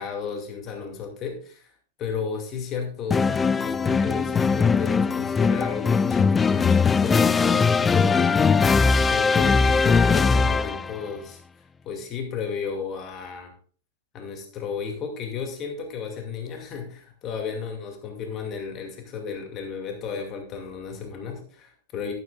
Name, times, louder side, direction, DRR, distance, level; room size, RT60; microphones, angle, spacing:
voice 1, 0.0-1.7 2.0-8.4 8.6-11.4 11.8-13.5 14.1-22.1, left 6 dB, 35° left, 3 dB, 2.4 m, -34 dB
sound 1, 3.1-11.0, left 5 dB, 15° left, 0.3 m, -20 dB
12.0 x 11.0 x 2.5 m, 0.44 s
hypercardioid pair, 100°, 0 cm